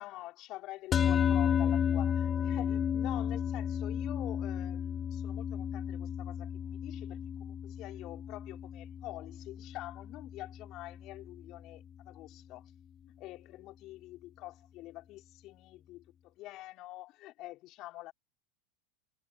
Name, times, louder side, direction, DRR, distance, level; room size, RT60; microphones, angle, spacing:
voice 1, 0.0-12.7 13.0-18.1, left 17 dB, 50° left, 5.1 m, -47 dB
sound 1, 0.9-11.4, left 8 dB, 30° left, 1.9 m, -33 dB
hypercardioid pair, 100°, 0 cm